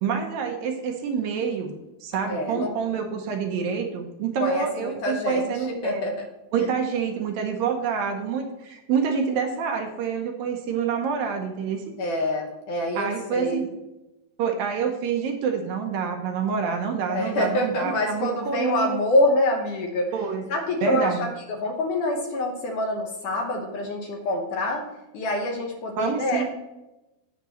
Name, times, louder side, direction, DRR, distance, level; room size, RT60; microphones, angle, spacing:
voice 1, 0.0-1.7 2.0-6.1 6.5-11.9 13.0-13.6 14.4-19.0 20.1-20.5 20.8-21.2 26.0-26.4, right 6 dB, 75° right, 4 dB, 2.5 m, -27 dB
voice 2, 2.3-2.8 4.4-6.3 6.6-6.7 12.0-13.7 17.1-20.1 20.5-24.8 25.1-26.4, left 1 dB, 65° left, 2 dB, 2.3 m, -26 dB
16.0 x 5.9 x 3.1 m, 0.97 s
omnidirectional pair, 4.4 m